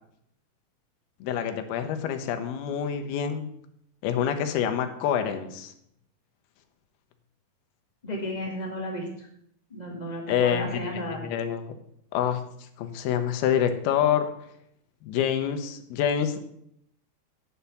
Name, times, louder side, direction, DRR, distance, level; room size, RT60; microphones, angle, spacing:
voice 1, 1.2-3.5 4.0-5.7 10.3-10.6 11.1-11.6 12.1-12.4 12.8-14.3 15.0-16.4, left 9 dB, 90° left, 7 dB, 2.8 m, -26 dB
voice 2, 8.0-9.3 9.7-11.2, equal, 20° left, 0 dB, 1.1 m, -33 dB
9.8 x 5.7 x 7.0 m, 0.71 s
omnidirectional pair, 4.3 m